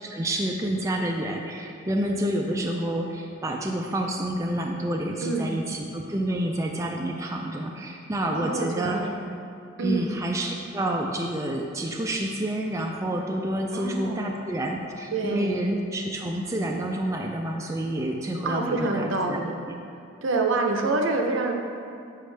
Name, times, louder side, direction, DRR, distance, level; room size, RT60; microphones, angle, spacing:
voice 1, 0.0-9.0 9.8-19.7, right 1 dB, 15° right, 1 dB, 0.3 m, -29 dB
voice 2, 5.2-5.5 8.3-9.2 9.8-10.1 13.7-14.3 15.1-15.6 18.4-19.6 20.2-21.5, right 3 dB, 70° right, 3 dB, 0.6 m, -27 dB
6.6 x 6.2 x 3.3 m, 2.5 s
head